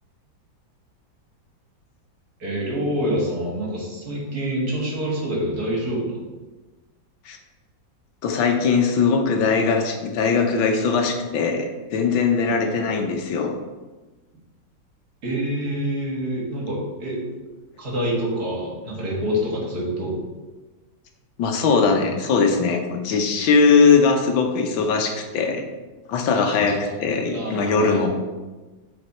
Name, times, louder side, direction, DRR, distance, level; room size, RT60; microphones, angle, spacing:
voice 1, 2.4-6.2 12.6-12.8 15.2-17.2 17.8-20.2 26.4-28.1, equal, 50° right, -3 dB, 2.2 m, -27 dB
voice 2, 8.2-13.5 21.4-25.6 26.1-28.1, left 5 dB, 85° left, 4 dB, 1.6 m, -20 dB
8.0 x 4.5 x 4.3 m, 1.2 s
omnidirectional pair, 2.1 m